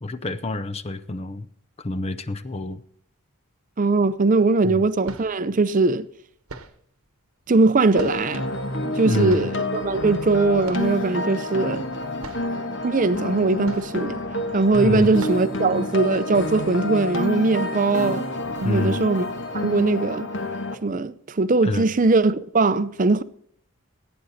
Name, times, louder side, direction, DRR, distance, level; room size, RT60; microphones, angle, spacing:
voice 1, 0.0-1.5 1.8-2.8 4.6-4.8 9.0-9.5 14.8-15.1 18.6-19.0 21.6-21.9, left 2 dB, 30° left, 0.6 m, -27 dB
voice 2, 3.8-6.1 7.5-8.4 9.0-11.9 12.8-14.2 14.5-18.3 18.6-19.3 19.5-20.3 20.8-23.2, right 3 dB, 35° right, 0.5 m, -20 dB
sound 1, 4.1-4.2 4.9-5.5 6.5-6.9 8.0-8.5 9.3-9.7 10.6-11.1 11.3-11.4 11.9-12.0 12.2-12.6 13.6-14.2 14.6-14.7 15.2-15.6, right 3 dB, 80° right, 1.2 m, -41 dB
sound 2, 7.9-20.7, left 1 dB, 60° left, 1.4 m, -28 dB
sound 3, 8.0-19.7, equal, 85° left, 3.0 m, -46 dB
16.5 x 9.0 x 4.1 m
head